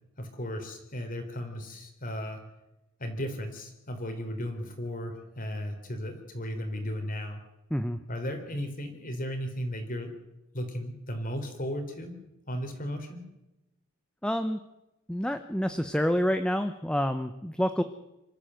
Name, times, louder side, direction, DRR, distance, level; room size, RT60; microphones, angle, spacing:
voice 1, 0.2-2.4 3.0-7.4 8.1-10.1 10.5-12.1 12.5-13.2, equal, 45° left, 5 dB, 3.8 m, -35 dB
voice 2, 14.2-14.6 15.1-17.8, equal, 5° left, 9 dB, 0.8 m, -28 dB
26.0 x 13.5 x 7.8 m, 0.94 s
head